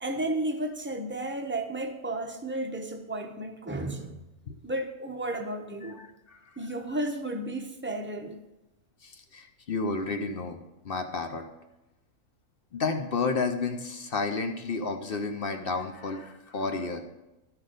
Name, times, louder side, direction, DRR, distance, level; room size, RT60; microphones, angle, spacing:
voice 1, 0.0-4.2 4.6-6.0 6.6-8.4, right 1 dB, 10° right, 0.5 m, -33 dB
voice 2, 9.0-10.6 10.8-11.4 12.7-17.0, left 4 dB, 50° left, 0.7 m, -31 dB
11.5 x 5.9 x 5.1 m
omnidirectional pair, 1.6 m